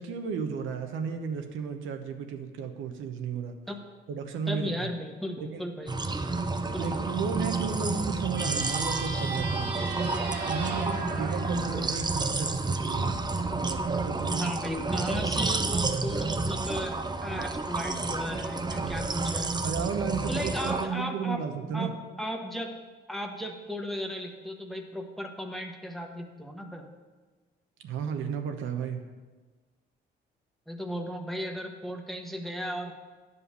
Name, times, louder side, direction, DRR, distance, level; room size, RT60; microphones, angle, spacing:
voice 1, 0.0-3.6 4.1-4.9 5.4-5.6 6.7-9.7 10.4-13.2 13.6-14.5 18.7-19.0 19.6-21.9 27.8-29.0, right 6 dB, 85° right, 5 dB, 0.9 m, -34 dB
voice 2, 4.5-6.1 6.5-7.1 14.3-19.5 20.3-21.4 21.7-21.9 22.2-22.7 23.1-26.9 30.7-32.9, equal, ahead, 3 dB, 1.1 m, -36 dB
sound 1, 5.9-20.9, right 3 dB, 20° right, 0.6 m, -30 dB
sound 2, 8.3-12.8, right 4 dB, 55° right, 1.3 m, -37 dB
9.6 x 5.3 x 6.7 m, 1.3 s
cardioid pair, 90°, 20 cm